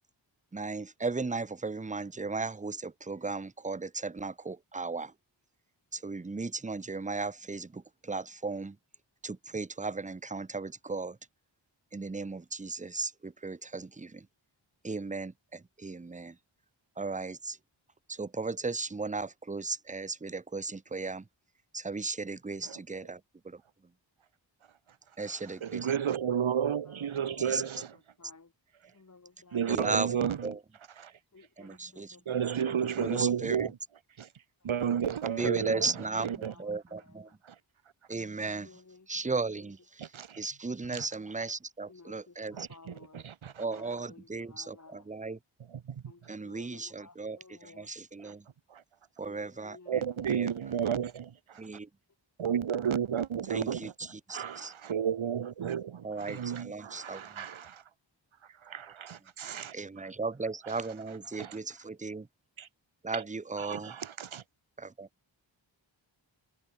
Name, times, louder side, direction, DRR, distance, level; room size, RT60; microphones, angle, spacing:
voice 1, 0.5-5.1 5.9-8.8 9.2-11.2 11.9-14.3 14.8-16.4 17.0-17.6 18.1-21.2 21.7-23.6 25.2-25.9 27.5-27.6 29.7-30.1 30.4-30.6 31.6-32.2 33.0-33.7 35.4-37.3 38.1-38.8 39.1-40.0 40.4-42.6 43.6-45.4 46.3-48.4 49.2-50.0 50.3-50.5 51.6-51.9 53.5-53.9 54.3-54.7 56.0-57.2 59.7-62.3 63.0-63.9 64.8-65.1, right 3 dB, 15° right, 0.6 m, -36 dB
voice 2, 25.2-28.0 29.5-30.6 31.0-31.1 32.3-33.8 34.2-34.3 34.6-36.5 37.4-37.6 40.0-40.4 40.9-41.1 42.5-43.6 45.7-46.3 48.2-48.3 48.7-48.8 49.9-51.6 52.4-57.8 58.4-60.1 60.6-60.8 61.1-61.6 62.6-62.7 63.1-63.2 63.6-64.4, right 8 dB, 90° right, 1.1 m, -33 dB
voice 3, 26.9-27.5 28.2-28.5 28.9-29.7 31.3-32.5 34.6-34.7 35.2-35.4 36.4-37.3 38.5-39.1 41.9-43.2 43.6-45.1 46.0-47.9 49.2-50.0, left 3 dB, 35° left, 1.6 m, -56 dB
wide cardioid pair, 70°, 46 cm